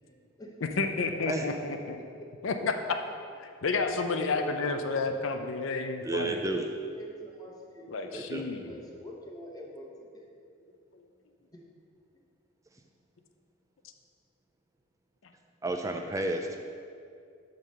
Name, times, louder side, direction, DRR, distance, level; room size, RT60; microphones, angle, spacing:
voice 1, 0.0-1.5 4.2-4.8 6.9-8.2 8.6-10.3 11.5-11.6, equal, 20° left, -1 dB, 1.0 m, -45 dB
voice 2, 0.8-2.0 2.4-2.8 3.6-6.4 7.9-8.6, left 4 dB, 80° left, 6 dB, 0.5 m, -30 dB
voice 3, 6.0-6.7 8.1-8.4 15.6-16.6, right 2 dB, 15° right, 4 dB, 0.4 m, -31 dB
5.7 x 5.3 x 6.5 m, 2.3 s
head